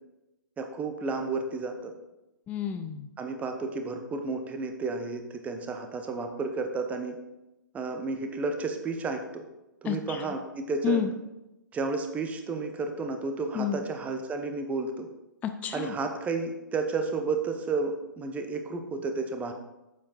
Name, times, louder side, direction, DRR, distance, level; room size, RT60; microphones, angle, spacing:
voice 1, 0.6-1.9 3.2-7.2 7.7-9.4 9.8-11.1 11.7-15.1 15.7-19.5, right 4 dB, 15° right, 6 dB, 0.8 m, -32 dB
voice 2, 2.5-3.1 9.8-10.3 10.8-11.1 13.5-13.8 15.4-16.0, left 10 dB, 15° left, 8 dB, 0.4 m, -30 dB
7.4 x 7.1 x 4.2 m, 0.95 s
figure-of-eight pair, 125°, 11 cm